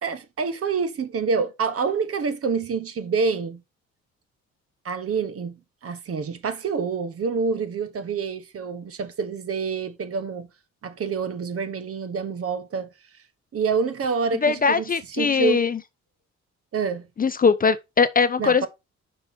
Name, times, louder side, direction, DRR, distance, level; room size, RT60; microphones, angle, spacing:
voice 1, 0.0-3.6 4.8-10.5 10.8-12.9 13.5-15.7 16.7-17.1 18.4-18.7, right 5 dB, 50° right, 1.2 m, -27 dB
voice 2, 14.4-15.8 17.2-18.7, left 5 dB, 30° left, 0.5 m, -21 dB
5.6 x 5.3 x 4.2 m
cardioid pair, 90°, 30 cm